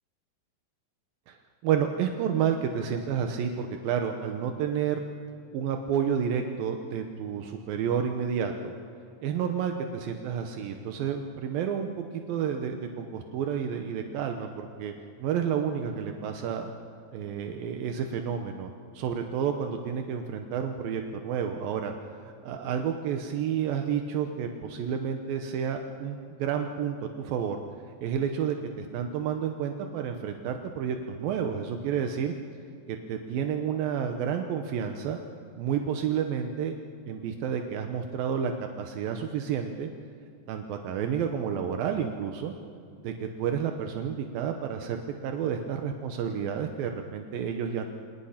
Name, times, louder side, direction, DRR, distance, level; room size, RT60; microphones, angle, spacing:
voice 1, 1.6-5.0 5.5-8.7 9.2-14.9 15.2-16.7 17.1-21.9 22.4-27.6 28.0-32.3 32.9-35.2 35.6-36.8 37.1-38.5 38.8-39.9 40.5-42.5 43.0-47.9, right 8 dB, 75° right, 5 dB, 2.1 m, -30 dB
29.0 x 27.0 x 5.8 m, 2.4 s
omnidirectional pair, 5.5 m